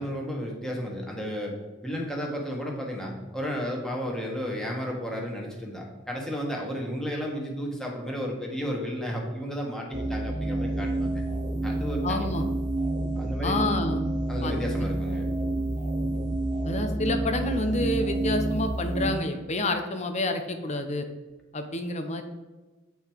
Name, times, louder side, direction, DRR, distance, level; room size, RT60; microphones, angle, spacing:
voice 1, 0.0-1.6 1.8-11.2 11.6-12.3 13.2-13.7 14.3-15.3, equal, 5° left, -1 dB, 1.7 m, -33 dB
sound 1, 9.9-19.2, right 2 dB, 40° right, 1.0 m, -29 dB
voice 2, 12.0-12.5 13.4-14.0 14.4-14.5 16.6-21.1 21.5-22.2, left 2 dB, 35° left, 6 dB, 0.8 m, -28 dB
8.7 x 5.4 x 4.6 m, 1.2 s
head